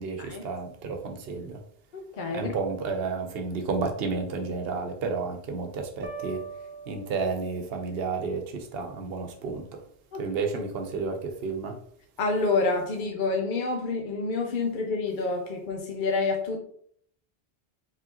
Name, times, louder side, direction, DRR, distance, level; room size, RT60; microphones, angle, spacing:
voice 1, 0.0-1.6 2.3-6.4 6.9-9.8 10.1-11.8, right 4 dB, 75° right, 4 dB, 0.9 m, -31 dB
voice 2, 1.9-2.5 10.1-10.2 12.2-16.6, left 3 dB, 55° left, 3 dB, 0.8 m, -28 dB
sound 1, 6.0-7.9, right 4 dB, 20° right, 0.3 m, -41 dB
5.0 x 3.3 x 2.8 m, 0.63 s
omnidirectional pair, 1.0 m